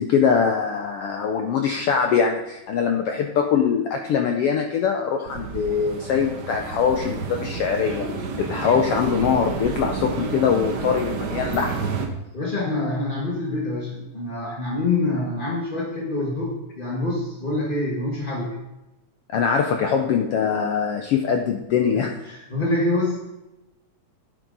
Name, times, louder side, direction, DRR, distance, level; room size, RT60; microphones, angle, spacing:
voice 1, 0.0-8.1 8.5-11.9 19.3-22.2, left 6 dB, 75° left, 4 dB, 1.3 m, -22 dB
sound 1, 5.3-12.1, right 4 dB, 85° right, 0.9 m, -30 dB
voice 2, 12.3-18.5 21.9-23.2, left 2 dB, 30° left, -4 dB, 0.9 m, -26 dB
10.0 x 9.2 x 4.0 m, 0.98 s
omnidirectional pair, 3.4 m